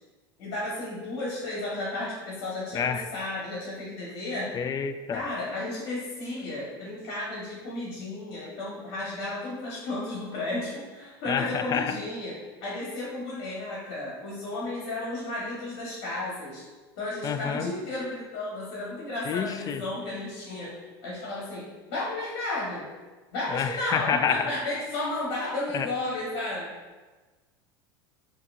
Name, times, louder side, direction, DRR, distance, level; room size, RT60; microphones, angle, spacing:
voice 1, 0.4-4.5 5.1-16.6 17.0-20.7 21.0-22.8 23.3-26.7, left 2 dB, 65° left, -6 dB, 1.4 m, -33 dB
voice 2, 2.7-3.1 4.5-5.2 11.3-12.0 17.2-17.7 19.3-19.8 23.5-24.5 25.7-25.9, left 7 dB, 30° left, 9 dB, 0.3 m, -28 dB
5.7 x 2.8 x 2.6 m, 1.3 s
hypercardioid pair, 95°, 13 cm